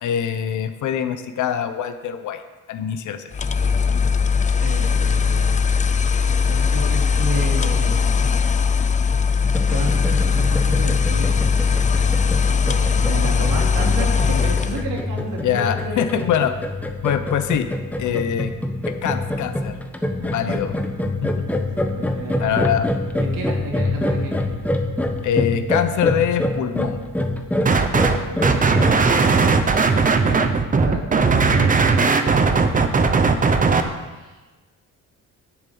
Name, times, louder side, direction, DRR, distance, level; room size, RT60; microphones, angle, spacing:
voice 1, 0.0-2.4 2.7-3.3 15.4-16.5 17.0-17.7 18.0-18.5 18.9-19.8 20.2-20.8 21.1-21.5 22.4-22.9 25.2-27.0, left 9 dB, 65° left, 9 dB, 1.0 m, -23 dB
sound 1, 3.3-14.9, left 5 dB, 25° left, 0.5 m, -19 dB
voice 2, 4.2-5.7 6.3-8.1 9.7-12.1 12.6-16.3 21.7-22.6 23.1-24.3 27.5-31.1 31.4-32.8 33.4-34.4, right 2 dB, 75° right, 0 dB, 3.0 m, -32 dB
sound 2, 9.4-28.9, left 1 dB, 5° left, 1.0 m, -26 dB
sound 3, 27.7-28.2 28.4-33.8, right 4 dB, 25° right, 0.8 m, -17 dB
10.5 x 7.3 x 7.7 m, 1.2 s
cardioid pair, 130°, 32 cm